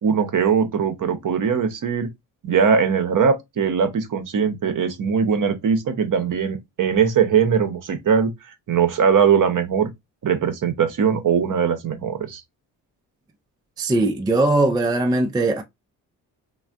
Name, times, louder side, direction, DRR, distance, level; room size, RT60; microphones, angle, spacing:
voice 1, 0.0-2.1 2.4-8.3 8.7-9.9 10.2-12.4, right 6 dB, 45° right, 0.8 m, -20 dB
voice 2, 13.8-15.6, right 2 dB, 10° right, 0.4 m, -20 dB
3.2 x 2.3 x 2.4 m
hypercardioid pair, 40°, 45 cm